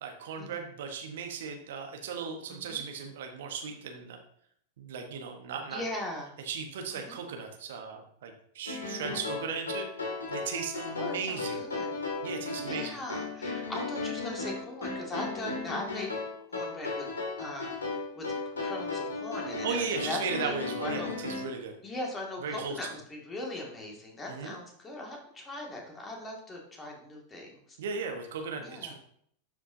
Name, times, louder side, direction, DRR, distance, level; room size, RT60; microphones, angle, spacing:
voice 1, 0.0-4.2 4.8-5.8 6.5-11.6 12.2-13.0 19.6-21.7 22.4-22.9 24.3-24.6 27.8-28.9, right 5 dB, 60° right, 4 dB, 1.1 m, -36 dB
voice 2, 2.5-2.8 5.7-6.3 6.9-7.2 10.9-11.9 12.6-16.1 16.5-17.1 17.4-18.3 18.6-20.5 20.8-21.1 21.8-27.8 28.6-28.9, left 1 dB, 20° left, 0 dB, 2.1 m, -39 dB
sound 1, 8.7-21.6, left 3 dB, 70° left, 2.1 m, -35 dB
11.5 x 5.0 x 2.8 m, 0.67 s
figure-of-eight pair, 90°, 0 cm